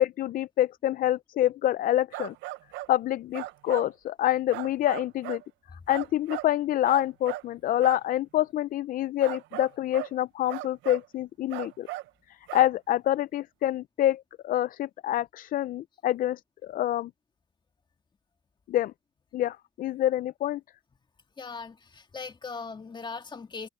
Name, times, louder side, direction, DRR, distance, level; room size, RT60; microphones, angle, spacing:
voice 1, 0.0-2.3 2.9-5.4 5.9-11.9 12.3-17.1 18.7-18.9 19.3-20.6, left 13 dB, 50° left, 0.4 m, -27 dB
sound 1, 2.1-2.9 3.3-3.9 4.5-5.5 5.9-6.5 6.9-7.5 7.8-8.0 9.2-10.2 10.5-11.1 11.5-12.1 12.5-12.7, right 17 dB, 85° right, 0.6 m, -37 dB
voice 2, 21.4-23.7, left 4 dB, 25° left, 2.2 m, -39 dB
open air
cardioid pair, 120°, 19 cm